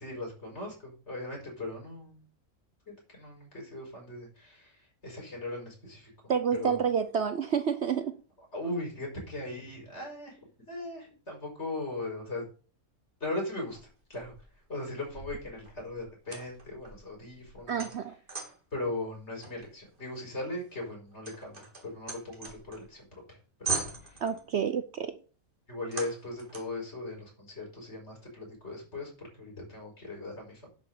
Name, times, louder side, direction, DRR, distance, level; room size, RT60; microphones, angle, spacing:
voice 1, 0.0-2.3 2.9-6.1 6.5-6.8 8.5-12.4 13.2-14.3 14.7-17.9 18.7-24.2 25.7-30.7, left 2 dB, 50° left, 6.0 m, -39 dB
voice 2, 6.3-8.2 17.7-18.1 24.2-25.1, right 7 dB, 55° right, 0.9 m, -29 dB
sound 1, 13.7-14.6 15.1-18.7 19.4-23.0 23.3-23.4 23.6-24.5 25.9-26.8, right 4 dB, 35° right, 2.7 m, -40 dB
11.0 x 6.0 x 6.7 m
omnidirectional pair, 1.5 m